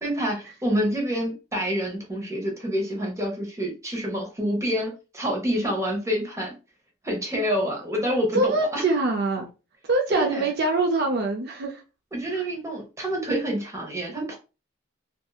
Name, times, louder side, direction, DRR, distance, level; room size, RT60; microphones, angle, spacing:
voice 1, 0.0-6.5 7.0-8.8 10.1-10.5 12.1-14.4, equal, 15° right, 0.9 m, -27 dB
voice 2, 8.3-9.5 9.9-11.8 12.3-12.4, right 2 dB, 50° right, 0.5 m, -24 dB
2.6 x 2.6 x 2.3 m
head